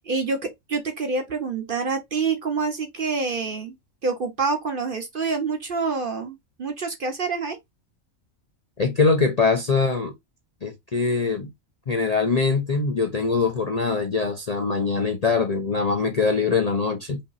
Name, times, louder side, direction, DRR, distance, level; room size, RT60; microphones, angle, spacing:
voice 1, 0.0-0.4 0.7-3.8 4.0-7.6, right 4 dB, 45° right, 0.9 m, -27 dB
voice 2, 8.8-10.1 10.6-11.5 11.9-17.2, left 4 dB, 40° left, 0.6 m, -23 dB
5.4 x 2.8 x 2.6 m
omnidirectional pair, 1.4 m